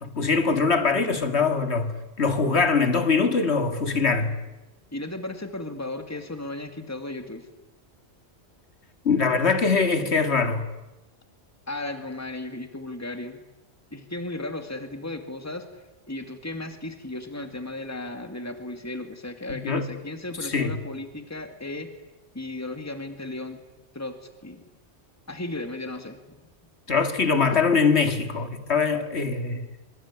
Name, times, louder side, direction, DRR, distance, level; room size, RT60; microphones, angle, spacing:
voice 1, 0.0-4.4 9.0-10.7 19.5-19.9 20.4-20.8 26.9-29.7, left 4 dB, 70° left, 2.5 m, -23 dB
voice 2, 4.9-7.5 11.7-13.4 13.9-15.7 16.1-21.9 22.3-23.6 23.9-24.1 24.4-24.6 25.3-26.2, left 2 dB, 15° left, 2.3 m, -35 dB
24.5 x 24.0 x 9.8 m
omnidirectional pair, 1.2 m